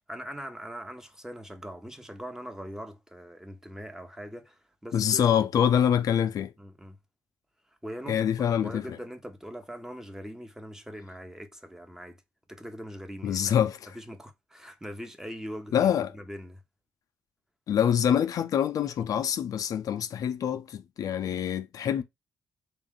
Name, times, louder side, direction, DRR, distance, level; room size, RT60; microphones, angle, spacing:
voice 1, 0.1-5.3 6.6-7.0 7.8-12.2 12.5-13.5 13.9-16.6, equal, 10° right, 0.9 m, -42 dB
voice 2, 4.9-6.5 8.1-8.8 13.2-13.9 15.7-16.1 17.7-22.0, left 9 dB, 65° left, 0.4 m, -25 dB
3.7 x 2.4 x 3.7 m
cardioid pair, 65°, 6 cm